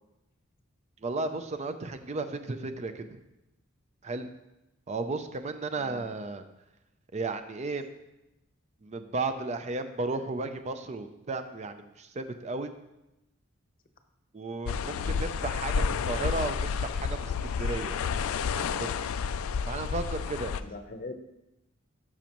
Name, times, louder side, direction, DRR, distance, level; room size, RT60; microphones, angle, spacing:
voice 1, 1.0-3.2 4.0-4.3 4.9-6.4 7.1-7.9 8.8-12.7 14.3-18.0 18.5-19.0 19.6-20.5, right 3 dB, 35° right, 9 dB, 0.5 m, -34 dB
voice 2, 5.7-6.1 14.8-15.2 19.2-19.3 20.6-21.1, left 2 dB, 45° left, 7 dB, 0.7 m, -43 dB
sound 1, 14.7-20.6, left 6 dB, 85° left, 0.4 m, -30 dB
12.0 x 6.1 x 3.0 m, 0.92 s
head